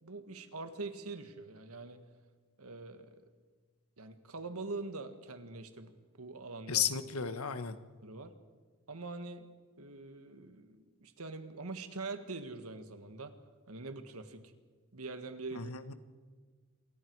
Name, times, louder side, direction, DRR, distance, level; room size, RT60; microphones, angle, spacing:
voice 1, 0.0-2.0 2.6-3.2 4.0-5.9 6.2-6.8 8.0-8.3 8.9-9.5 9.8-13.3 13.7-14.5 14.9-15.7, right 3 dB, 90° right, 8 dB, 1.7 m, -44 dB
voice 2, 6.7-7.8 15.5-15.9, left 8 dB, 85° left, 10 dB, 1.3 m, -34 dB
27.5 x 24.0 x 4.7 m, 1.5 s
head